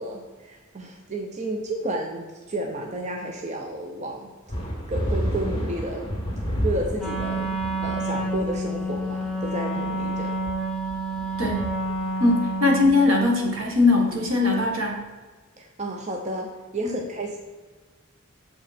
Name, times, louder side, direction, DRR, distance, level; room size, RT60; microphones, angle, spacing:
voice 1, 0.0-4.3 4.9-6.2 6.6-10.4 15.6-17.4, right 1 dB, 35° right, 2 dB, 0.6 m, -31 dB
sound 1, 4.5-14.4, equal, 25° left, 2.0 m, -32 dB
Wind instrument woodwind instrument, 7.0-13.1, right 1 dB, ahead, 1.1 m, -29 dB
voice 2, 12.2-15.0 16.8-17.0, left 3 dB, 70° right, 0 dB, 1.7 m, -21 dB
7.4 x 5.1 x 4.3 m, 1.4 s
head